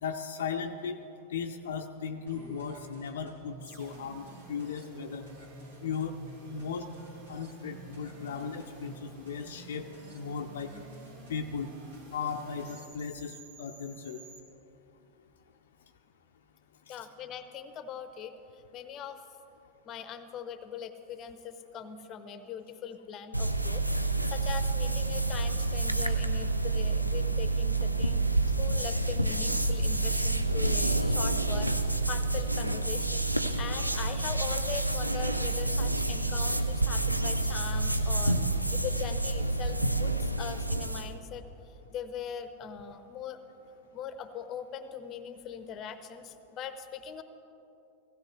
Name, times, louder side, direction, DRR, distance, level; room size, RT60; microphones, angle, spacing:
voice 1, 0.0-1.0 1.3-5.2 5.8-6.2 6.5-6.9 7.3-9.9 10.1-10.7 11.3-11.7 12.1-14.2 16.9-17.1 28.5-28.6, left 6 dB, 60° left, 5 dB, 0.5 m, -37 dB
sound 1, 2.3-12.9, right 1 dB, 70° right, 2.4 m, -51 dB
sound 2, 3.6-14.4, right 3 dB, 50° right, 2.1 m, -52 dB
voice 2, 16.9-18.3 18.7-19.2 19.8-28.2 28.6-41.4 41.9-43.4 43.9-47.2, left 7 dB, 30° left, 11 dB, 0.8 m, -41 dB
sound 3, 23.3-41.1, right 2 dB, 90° right, 0.5 m, -28 dB
16.5 x 16.0 x 3.2 m, 2.8 s
figure-of-eight pair, 90°, 0 cm